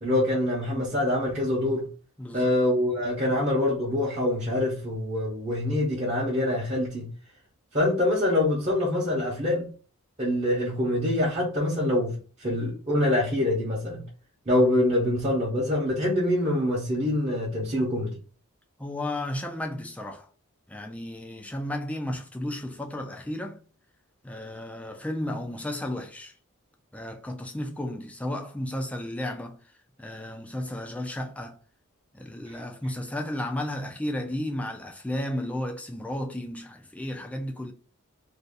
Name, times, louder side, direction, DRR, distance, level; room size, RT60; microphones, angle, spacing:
voice 1, 0.0-1.8 2.3-7.1 7.7-9.6 10.2-14.0 14.5-18.1, left 1 dB, 30° right, 0.9 m, -25 dB
voice 2, 2.2-2.5 3.3-3.4 18.8-20.3 20.7-23.6 24.2-26.3 26.9-29.6 30.0-31.6 32.1-37.7, left 1 dB, 5° left, 0.4 m, -33 dB
2.7 x 2.4 x 3.7 m
head